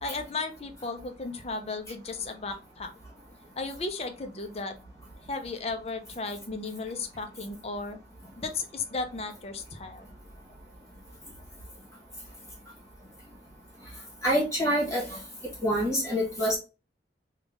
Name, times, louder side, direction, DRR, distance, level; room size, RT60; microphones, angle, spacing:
voice 1, 0.0-2.9 3.6-4.7 5.3-8.0 8.4-10.1, left 3 dB, 35° left, 6 dB, 0.6 m, -35 dB
voice 2, 14.2-15.2 15.6-16.6, equal, 15° left, -3 dB, 1.3 m, -26 dB
3.7 x 2.4 x 3.5 m, 0.31 s
head